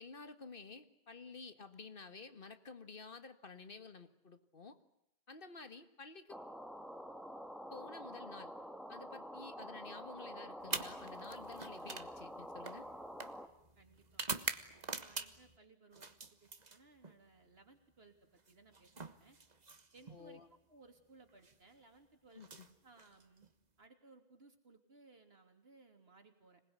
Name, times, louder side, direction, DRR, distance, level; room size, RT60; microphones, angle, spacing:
voice 1, 0.0-4.8 5.3-6.4 7.7-8.5 8.9-12.9 20.1-20.5 22.4-22.7, left 4 dB, 60° left, 10 dB, 1.9 m, -52 dB
sound 1, 6.3-13.5, equal, ahead, 1.8 m, -48 dB
sound 2, 10.6-15.6 15.9-17.2 18.4-20.2 21.3-21.5 22.3-23.5, right 4 dB, 45° right, 1.5 m, -45 dB
voice 2, 13.8-14.4 14.9-18.9 19.2-19.4 19.9-20.4 20.7-22.5 22.8-23.5 23.8-26.6, right 3 dB, 75° right, 6 dB, 3.4 m, -63 dB
26.0 x 20.0 x 9.6 m, 0.80 s
omnidirectional pair, 1.0 m